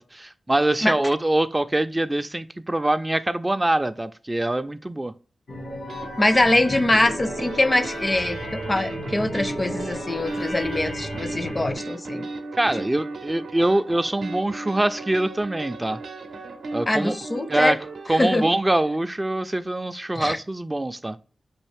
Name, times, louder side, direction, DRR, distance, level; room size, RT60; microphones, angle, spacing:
voice 1, 0.0-5.1 12.6-16.0 16.7-17.1 17.5-17.8 18.1-21.2, right 1 dB, 25° right, 0.3 m, -24 dB
sound 1, 5.5-11.8, left 1 dB, 80° left, 1.4 m, -34 dB
sound 2, 5.9-18.5, right 3 dB, 85° right, 0.6 m, -36 dB
voice 2, 6.2-12.3 16.9-17.8 18.1-18.5 20.2-20.4, left 1 dB, 30° left, 0.5 m, -23 dB
5.4 x 2.5 x 3.3 m
cardioid pair, 40°, 0 cm